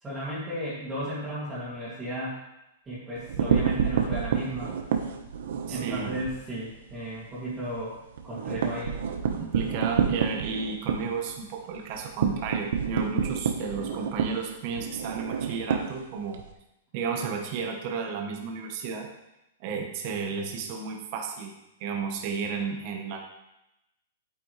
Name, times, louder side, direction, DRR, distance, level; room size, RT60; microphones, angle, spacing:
voice 1, 0.0-2.4 2.9-4.7 5.7-8.0 8.2-8.9, right 1 dB, 10° right, -12 dB, 2.4 m, -34 dB
sound 1, 3.2-6.4 6.7-6.9 7.2-7.3 7.7-16.5, right 7 dB, 70° right, 1.1 m, -28 dB
voice 2, 5.7-6.2 9.3-16.4 16.9-19.1 19.6-21.5 21.8-23.2, right 5 dB, 35° right, 2 dB, 1.2 m, -33 dB
9.1 x 8.8 x 3.3 m, 0.89 s
supercardioid pair, 170°, 0 cm